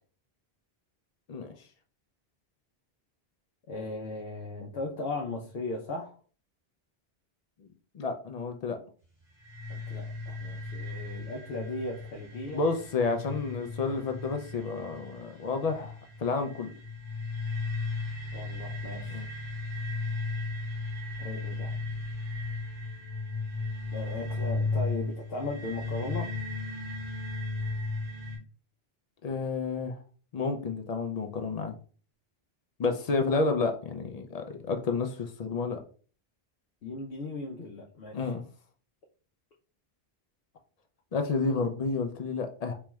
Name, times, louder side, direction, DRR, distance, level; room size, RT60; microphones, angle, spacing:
voice 1, 3.7-6.2 9.7-12.6 18.3-19.2 21.2-21.8 23.9-26.3 36.8-38.2, left 2 dB, 70° left, 0 dB, 0.8 m, -37 dB
voice 2, 7.9-8.8 12.5-16.7 19.1-19.3 29.2-30.0 30.3-31.7 32.8-35.8 38.1-38.4 41.1-42.7, left 4 dB, 55° left, 5 dB, 0.4 m, -30 dB
sound 1, 9.4-28.4, left 3 dB, 45° right, 2.1 m, -35 dB
4.3 x 3.0 x 2.3 m, 0.41 s
omnidirectional pair, 1.1 m